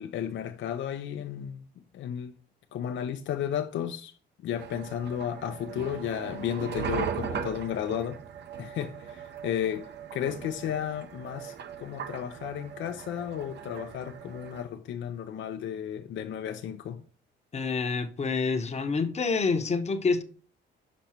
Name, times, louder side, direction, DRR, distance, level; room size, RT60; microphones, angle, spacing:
voice 1, 0.0-1.6 1.9-2.3 2.7-4.1 4.4-8.2 8.6-17.0, left 9 dB, 70° left, 0.6 m, -33 dB
sound 1, 4.6-14.6, right 7 dB, 60° right, 0.8 m, -39 dB
voice 2, 17.5-20.2, left 4 dB, 35° left, 1.0 m, -27 dB
6.2 x 5.3 x 4.4 m
cardioid pair, 90°, 20 cm